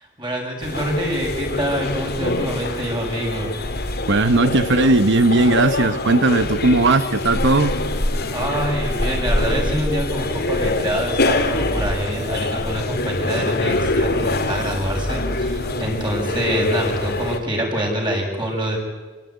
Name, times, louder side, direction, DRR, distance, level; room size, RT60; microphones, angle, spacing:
voice 1, 0.2-3.6 8.3-18.8, equal, 25° right, 0 dB, 7.0 m, -25 dB
sound 1, 0.6-17.4, left 2 dB, 50° left, 2.5 m, -24 dB
voice 2, 4.1-7.8, right 2 dB, 60° right, 11 dB, 1.0 m, -17 dB
27.0 x 17.5 x 9.5 m, 1.4 s
head